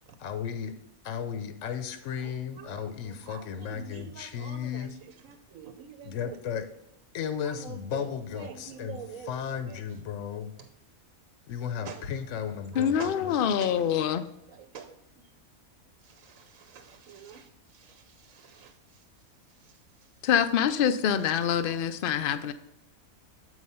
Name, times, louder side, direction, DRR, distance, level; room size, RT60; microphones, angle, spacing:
voice 1, 0.2-0.8 1.0-5.0 6.0-6.7 7.1-9.0 9.2-10.5 11.5-13.3, left 8 dB, 65° left, 9 dB, 0.9 m, -35 dB
voice 2, 2.2-6.4 7.4-9.8 10.6-10.7 11.8-12.0 12.7-14.1 14.5-15.3 16.0-19.0 19.5-20.1, right 7 dB, 70° right, 7 dB, 1.0 m, -47 dB
voice 3, 12.8-14.3 20.2-22.5, left 8 dB, 90° left, 11 dB, 0.4 m, -25 dB
8.0 x 4.8 x 5.5 m, 0.86 s
omnidirectional pair, 1.5 m